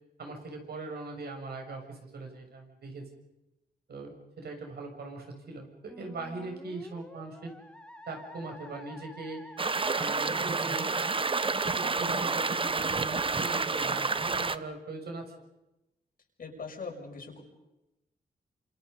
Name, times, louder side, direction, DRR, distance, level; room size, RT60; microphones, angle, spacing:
voice 1, 0.2-3.1 3.9-7.5 8.1-9.4 10.0-10.9 11.8-15.3, right 3 dB, 70° right, 3 dB, 7.1 m, -41 dB
Musical instrument, 5.9-11.1, left 1 dB, 5° left, 2.4 m, -49 dB
sound 1, 9.6-14.6, right 4 dB, 30° right, 1.1 m, -29 dB
voice 2, 16.4-17.4, left 4 dB, 60° left, 2 dB, 6.3 m, -41 dB
28.5 x 27.5 x 5.5 m, 0.93 s
cardioid pair, 85°, 17 cm